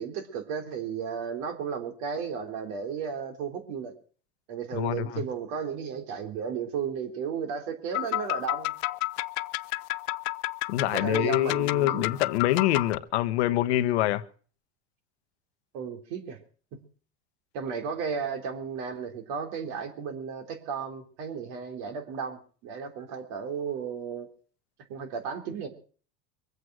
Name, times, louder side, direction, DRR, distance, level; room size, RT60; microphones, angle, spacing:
voice 1, 0.0-3.9 4.5-8.7 10.9-12.1 15.7-16.4 16.7-16.8 17.5-24.3 24.9-25.7, right 6 dB, 65° right, 3.4 m, -34 dB
voice 2, 4.7-5.3 10.7-14.2, left 14 dB, 85° left, 1.0 m, -25 dB
sound 1, 7.9-13.0, left 21 dB, 60° left, 0.6 m, -31 dB
23.0 x 8.2 x 6.1 m
supercardioid pair, 110°, 32 cm